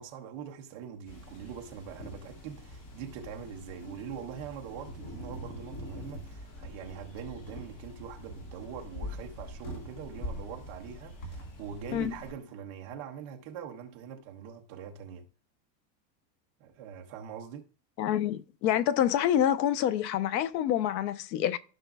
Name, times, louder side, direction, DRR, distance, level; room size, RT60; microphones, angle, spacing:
voice 1, 0.0-15.3 16.6-17.7, right 7 dB, 20° right, 0.3 m, -43 dB
sound 1, 1.1-12.3, left 1 dB, 40° left, 1.9 m, -44 dB
voice 2, 18.0-21.6, left 10 dB, 85° left, 0.9 m, -27 dB
15.0 x 5.7 x 2.3 m
supercardioid pair, 170°, 49 cm